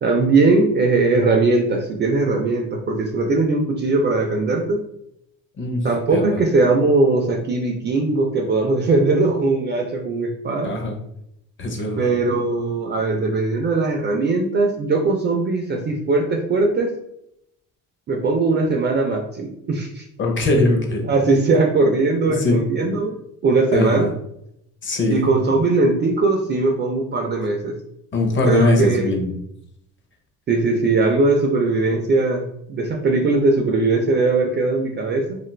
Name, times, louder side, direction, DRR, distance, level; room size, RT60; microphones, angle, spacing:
voice 1, 0.0-4.8 5.8-10.7 12.0-16.9 18.1-20.1 21.0-24.1 25.1-27.7 28.4-29.1 30.5-35.4, right 3 dB, 30° right, 2 dB, 0.4 m, -20 dB
voice 2, 10.6-11.0 11.6-12.1 20.2-21.0 22.4-22.6 23.7-24.0 24.8-25.3 28.1-29.3, left 2 dB, 30° left, 3 dB, 0.6 m, -20 dB
2.4 x 2.4 x 3.1 m, 0.77 s
cardioid pair, 115°, 37 cm